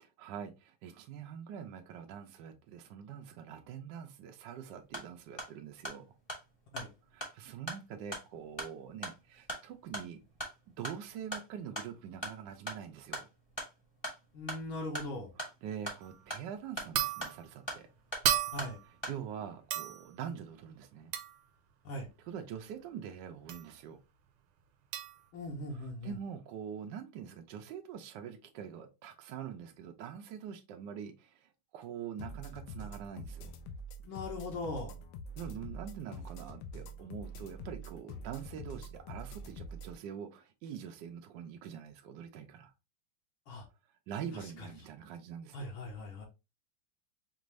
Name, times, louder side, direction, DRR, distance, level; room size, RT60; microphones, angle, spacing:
voice 1, 0.2-6.1 7.1-10.2 10.8-13.3 15.4-17.9 19.0-21.1 22.3-24.0 26.0-33.5 35.4-42.7 44.1-45.7, right 8 dB, 70° right, 1.2 m, -44 dB
sound 1, 4.8-19.2, right 1 dB, 20° left, 0.8 m, -44 dB
voice 2, 14.3-15.3 18.5-18.8 21.8-22.1 25.3-26.2 34.0-35.0 43.5-43.6 44.3-44.7 45.5-46.3, left 2 dB, 70° left, 1.7 m, -40 dB
sound 2, 16.0-16.2 16.9-17.4 18.2-18.9 19.7-20.1 21.1-21.4 23.5-23.7 24.9-25.2, right 11 dB, 90° right, 1.5 m, -33 dB
sound 3, 32.2-39.9, equal, 90° left, 1.5 m, -45 dB
5.3 x 2.5 x 3.1 m
omnidirectional pair, 2.4 m